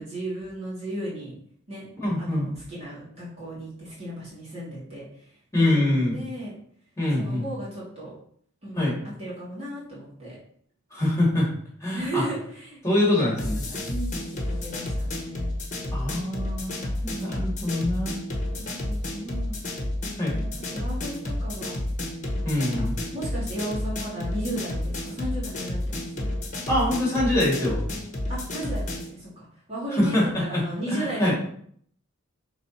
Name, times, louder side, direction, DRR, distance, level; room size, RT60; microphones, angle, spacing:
voice 1, 0.0-1.3 1.7-1.9 2.2-6.5 7.1-8.1 8.6-10.4 11.9-15.5 18.5-19.6 20.3-21.8 22.8-22.9 23.1-26.3 28.3-31.3, right 1 dB, 30° right, -8 dB, 2.6 m, -35 dB
voice 2, 2.0-2.5 5.5-6.2 7.0-7.4 8.7-9.0 10.9-11.5 11.8-12.2 12.8-13.6 15.9-16.7 17.0-18.2 20.2-20.3 22.4-22.9 26.7-27.8 29.9-30.6 30.9-31.3, left 1 dB, 15° left, -6 dB, 3.0 m, -24 dB
sound 1, 13.4-29.1, left 1 dB, 35° left, 1.4 m, -31 dB
6.1 x 4.1 x 4.4 m, 0.62 s
head